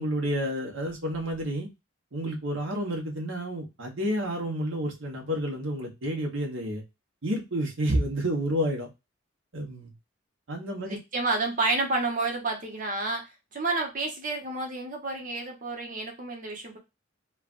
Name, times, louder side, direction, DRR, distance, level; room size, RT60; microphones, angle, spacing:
voice 1, 0.0-1.7 2.1-6.8 7.2-8.9 9.5-9.9 10.5-11.0, equal, 75° right, 0 dB, 1.1 m, -30 dB
voice 2, 10.8-16.8, right 3 dB, 45° right, 1 dB, 0.9 m, -30 dB
3.2 x 2.4 x 2.4 m, 0.23 s
head